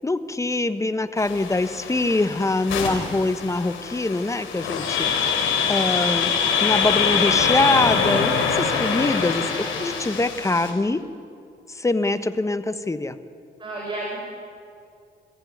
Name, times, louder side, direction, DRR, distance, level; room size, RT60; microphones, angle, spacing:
voice 1, 0.0-6.3 6.6-8.3 8.6-11.0 11.7-13.2, left 2 dB, 15° left, 11 dB, 1.1 m, -24 dB
sound 1, 1.2-10.7, left 6 dB, 85° left, 3.9 m, -24 dB
voice 2, 13.6-14.2, right 2 dB, 25° right, -2 dB, 4.7 m, -32 dB
22.5 x 14.5 x 9.4 m, 2.4 s
cardioid pair, 90°, 20 cm